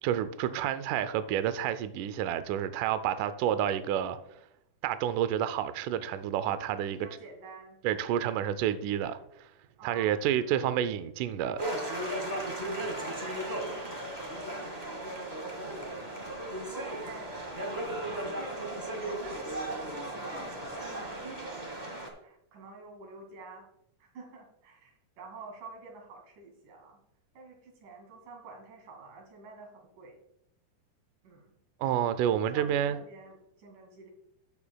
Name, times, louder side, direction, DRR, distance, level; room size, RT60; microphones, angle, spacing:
voice 1, 0.0-4.2 4.8-7.0 7.8-9.5 9.8-11.6 31.8-33.0, right 10 dB, 90° right, 1.8 m, -29 dB
voice 2, 6.6-7.8 9.8-10.7 13.2-14.1 14.5-15.1 15.4-15.7 16.6-23.7 24.0-27.0 27.3-30.2 31.2-31.5 32.3-34.1, right 3 dB, 60° right, 3.7 m, -49 dB
sound 1, 11.6-22.1, right 1 dB, 45° right, 0.5 m, -36 dB
13.5 x 8.5 x 2.3 m
omnidirectional pair, 4.3 m